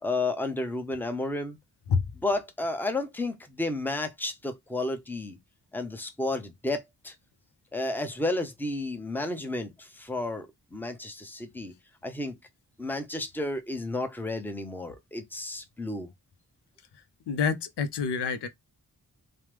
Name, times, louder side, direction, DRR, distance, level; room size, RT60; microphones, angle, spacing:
voice 1, 0.0-1.6 2.2-5.4 5.7-7.1 7.7-11.7 12.0-12.3 12.8-16.1, left 2 dB, 5° left, 0.6 m, -32 dB
voice 2, 17.3-18.5, left 6 dB, 80° left, 0.5 m, -27 dB
3.1 x 2.0 x 3.2 m
wide cardioid pair, 60°, 41 cm